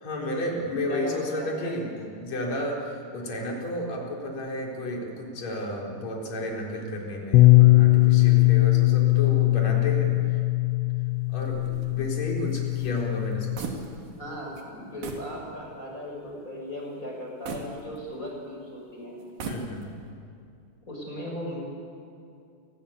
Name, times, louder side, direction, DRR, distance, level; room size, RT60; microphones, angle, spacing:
voice 1, 0.0-10.4 11.3-13.7 19.4-19.9, left 1 dB, 40° left, -1 dB, 5.0 m, -32 dB
voice 2, 0.9-1.9 14.2-19.2 20.8-21.6, left 1 dB, 20° left, -1 dB, 6.5 m, -37 dB
Bass guitar, 7.3-13.6, left 20 dB, 90° left, 3.1 m, -20 dB
sound 1, 11.4-14.3 14.5-14.7 15.0-15.3 15.8-15.9 17.4-18.4 19.2-20.1, right 4 dB, 55° right, 3.8 m, -39 dB
29.5 x 20.0 x 8.6 m, 2.5 s
omnidirectional pair, 4.9 m